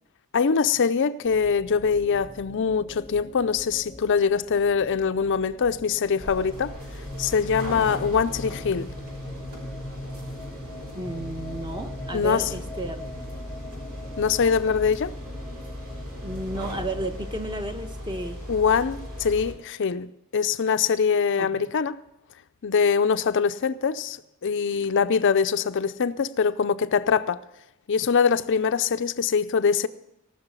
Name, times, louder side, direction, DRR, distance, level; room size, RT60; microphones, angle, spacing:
voice 1, 0.3-6.7 7.2-8.9 12.1-12.5 14.2-15.1 18.5-22.0 22.6-24.2 24.4-27.4 27.9-29.9, left 6 dB, 55° left, 0.5 m, -23 dB
sound 1, 1.2-17.1, left 1 dB, 10° left, 0.9 m, -41 dB
sound 2, 6.2-19.5, left 1 dB, 85° right, 5.8 m, -38 dB
voice 2, 10.9-13.1 16.2-18.4 21.4-21.6, right 1 dB, 20° right, 1.0 m, -33 dB
18.5 x 6.4 x 8.2 m
head